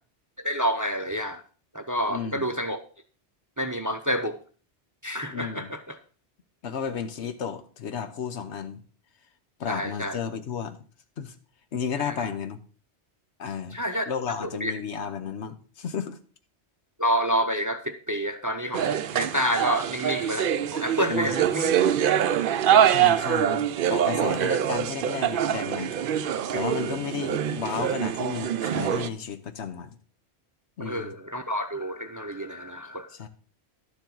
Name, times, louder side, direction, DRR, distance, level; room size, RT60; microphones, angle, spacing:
voice 1, 0.4-1.4 1.7-2.8 3.6-4.4 5.0-6.0 9.7-10.2 12.0-12.3 13.7-14.0 14.4-14.7 17.0-21.7 30.8-33.1, equal, 20° right, 0.5 m, -29 dB
voice 2, 2.1-2.5 5.3-5.7 6.6-8.8 9.6-10.8 11.2-11.3 11.7-12.6 13.4-13.8 14.1-16.2 21.1-21.4 22.9-25.9 26.5-30.0 30.8-31.1 33.2-33.3, left 7 dB, 80° left, 1.2 m, -33 dB
sound 1, 18.7-29.1, right 9 dB, 60° right, 0.7 m, -24 dB
11.5 x 7.3 x 3.9 m
omnidirectional pair, 1.1 m